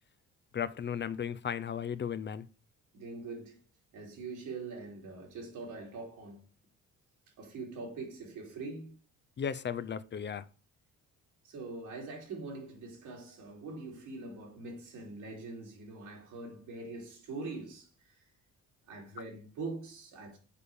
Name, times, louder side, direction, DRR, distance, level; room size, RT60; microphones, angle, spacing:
voice 1, 0.5-2.5 9.4-10.4, left 8 dB, 35° left, 0.6 m, -35 dB
voice 2, 2.9-3.6 3.9-6.5 7.4-9.0 11.4-18.1 18.9-20.4, right 3 dB, 85° right, 3.4 m, -43 dB
6.7 x 5.0 x 6.9 m
cardioid pair, 90°, 30 cm